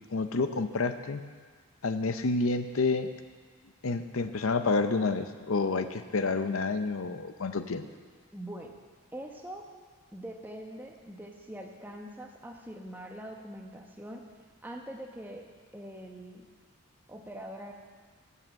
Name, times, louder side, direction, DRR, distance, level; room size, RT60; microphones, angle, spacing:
voice 1, 0.1-1.2 1.8-3.1 3.8-7.9, left 3 dB, 70° left, 9 dB, 0.6 m, -29 dB
voice 2, 8.3-8.8 9.1-9.6 10.1-14.2 14.6-15.5 15.7-16.5 17.1-17.7, right 1 dB, 10° right, 1 dB, 0.9 m, -43 dB
14.5 x 5.7 x 7.4 m, 1.5 s
head